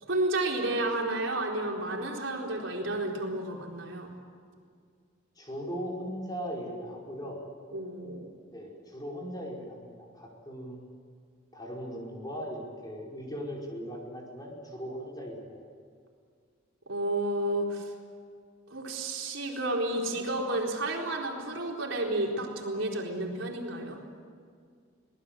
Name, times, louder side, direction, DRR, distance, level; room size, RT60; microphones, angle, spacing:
voice 1, 0.0-4.1 7.7-8.3 16.9-17.9 18.7-24.0, right 1 dB, 80° right, -1 dB, 4.3 m, -31 dB
voice 2, 5.4-7.4 8.5-10.8 11.5-15.6, equal, 20° left, -2 dB, 5.1 m, -39 dB
25.5 x 19.5 x 7.7 m, 2.2 s
head